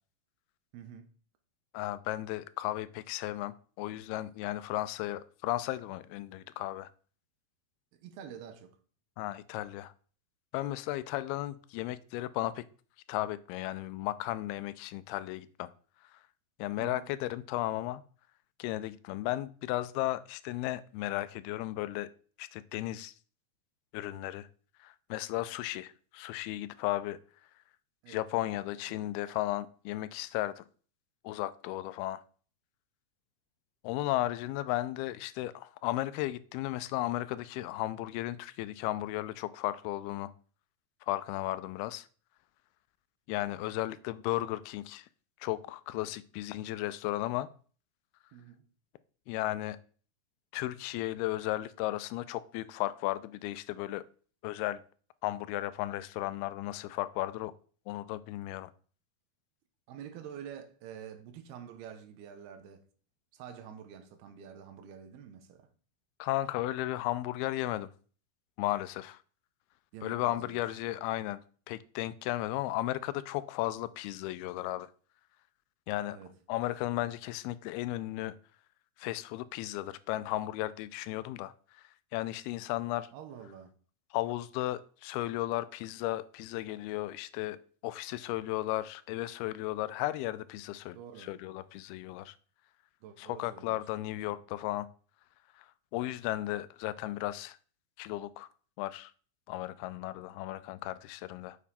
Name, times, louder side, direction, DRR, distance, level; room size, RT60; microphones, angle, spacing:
voice 1, 0.7-1.1 7.9-8.7 16.8-17.1 28.0-28.6 28.9-29.1 48.3-48.6 59.9-62.9 63.3-65.7 69.9-70.6 76.1-76.3 83.1-83.7 90.9-91.3 93.0-93.8 94.3-94.4, right 8 dB, 90° right, 3.0 m, -47 dB
voice 2, 1.7-6.9 9.2-9.9 10.5-12.6 13.1-15.7 16.6-18.0 18.6-22.1 22.4-23.1 23.9-24.5 24.8-27.2 28.1-30.6 31.2-32.2 33.8-40.3 41.1-42.1 43.3-45.1 45.4-47.5 49.3-49.8 50.5-54.0 54.4-54.8 55.2-57.5 57.9-58.7 66.2-67.9 68.6-69.2 70.0-71.4 71.7-74.9 75.9-76.2 76.5-78.4 79.0-81.8 82.1-83.1 84.1-87.6 87.8-92.4 93.2-94.9 95.6-97.6 98.0-98.5 98.8-99.1 99.5-101.6, left 16 dB, 90° left, 2.5 m, -35 dB
7.2 x 7.1 x 4.2 m
omnidirectional pair, 4.4 m